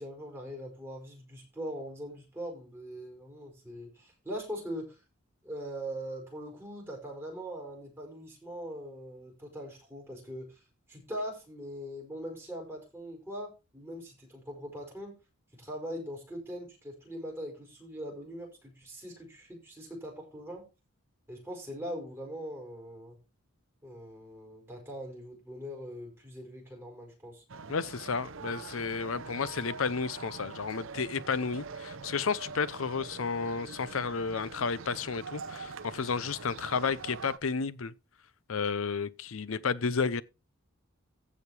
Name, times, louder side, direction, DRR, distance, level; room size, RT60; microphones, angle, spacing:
voice 1, 0.0-5.0 5.4-10.6 10.9-15.1 15.5-20.7 21.3-23.2 23.8-27.4, equal, 10° right, 5.1 m, -41 dB
sound 1, 27.5-37.4, right 4 dB, 70° right, 0.8 m, -44 dB
voice 2, 27.7-37.9 38.5-40.2, left 5 dB, 75° left, 0.7 m, -32 dB
15.0 x 5.2 x 4.5 m
head